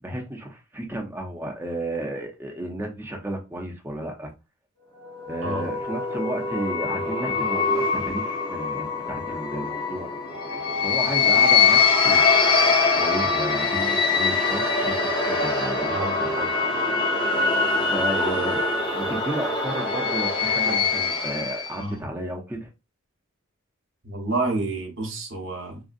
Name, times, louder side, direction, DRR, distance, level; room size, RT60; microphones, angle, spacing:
voice 1, 0.0-4.3 5.3-10.1 10.8-12.5 12.9-16.5 17.9-18.6 18.9-22.7, right 1 dB, 10° right, 0.7 m, -33 dB
sound 1, 5.0-21.8, left 4 dB, 25° left, 0.9 m, -23 dB
voice 2, 24.0-25.8, right 2 dB, 60° right, 1.1 m, -28 dB
3.7 x 2.2 x 2.5 m
head